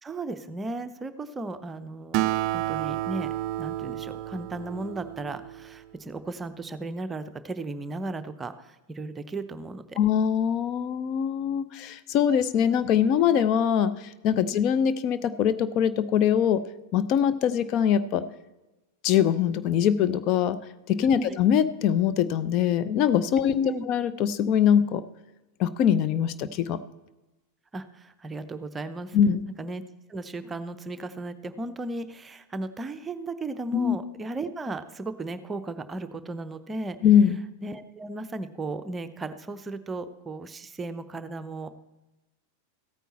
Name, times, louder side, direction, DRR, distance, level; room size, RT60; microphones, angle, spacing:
voice 1, 0.0-3.3 3.6-10.0 21.2-21.4 23.5-23.8 27.7-29.2 29.6-29.8 30.1-37.0 37.6-41.7, right 2 dB, 15° right, 10 dB, 0.7 m, -35 dB
Acoustic guitar, 2.1-5.9, right 15 dB, 45° right, 0.3 m, -30 dB
voice 2, 10.0-16.6 16.9-18.3 19.0-20.6 20.9-25.0 25.6-26.8 29.1-29.4 33.7-34.0 37.0-37.4, left 9 dB, 40° left, 12 dB, 0.6 m, -23 dB
15.0 x 9.1 x 4.3 m, 1.0 s
figure-of-eight pair, 90°, 0 cm